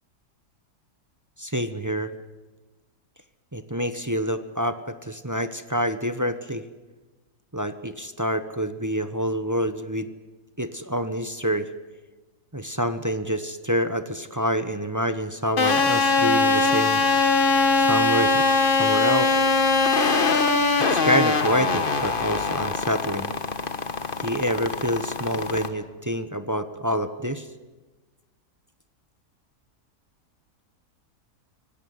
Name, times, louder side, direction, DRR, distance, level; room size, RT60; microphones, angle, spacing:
voice 1, 1.4-2.1 3.5-6.7 7.5-10.1 10.6-11.7 12.5-17.0 17.8-19.4 20.9-23.3 24.2-27.5, equal, 15° right, 10 dB, 0.9 m, -27 dB
sound 1, 15.6-25.7, left 3 dB, 35° left, 1.5 m, -22 dB
25.5 x 17.5 x 9.5 m, 1.2 s
omnidirectional pair, 1.7 m